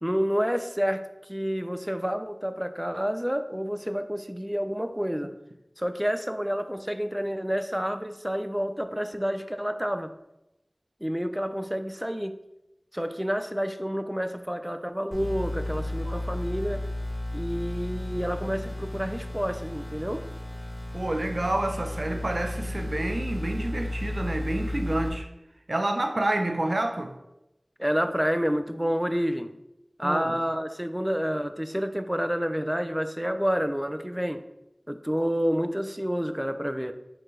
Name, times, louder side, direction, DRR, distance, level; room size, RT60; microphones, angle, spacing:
voice 1, 0.0-5.3 5.8-10.1 11.0-12.4 12.9-16.9 17.3-20.2 27.8-29.5 30.0-34.4 34.9-36.9, equal, 10° right, 9 dB, 0.3 m, -29 dB
sound 1, 15.1-25.1, left 1 dB, 50° left, 1.7 m, -33 dB
voice 2, 20.9-25.3 25.7-27.1 30.0-30.3, right 1 dB, 70° right, 5 dB, 0.5 m, -28 dB
4.5 x 3.7 x 3.2 m, 0.90 s
wide cardioid pair, 45°, 0 cm